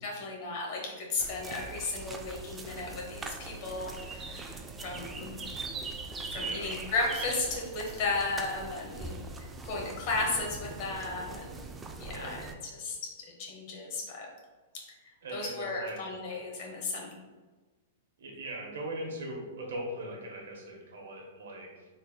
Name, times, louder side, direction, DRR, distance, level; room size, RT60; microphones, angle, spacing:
voice 1, 0.0-5.4 6.3-11.6 12.0-14.3 14.7-17.1, left 3 dB, 50° left, -1 dB, 1.1 m, -35 dB
sound 1, 1.2-12.6, right 3 dB, 15° right, 0.3 m, -41 dB
voice 2, 6.3-6.7 12.1-12.3 15.2-16.0 18.2-21.9, right 1 dB, 85° right, 0 dB, 1.0 m, -40 dB
3.8 x 3.5 x 2.3 m, 1.3 s
hypercardioid pair, 130°, 0 cm